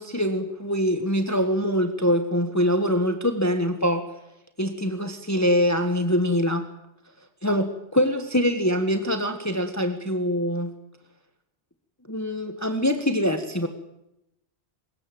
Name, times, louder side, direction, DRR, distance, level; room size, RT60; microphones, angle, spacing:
voice 1, 0.0-4.0 4.6-6.6 7.4-10.7 12.1-13.7, equal, 15° left, 7 dB, 1.5 m, -24 dB
24.0 x 21.0 x 7.9 m, 0.86 s
omnidirectional pair, 1.2 m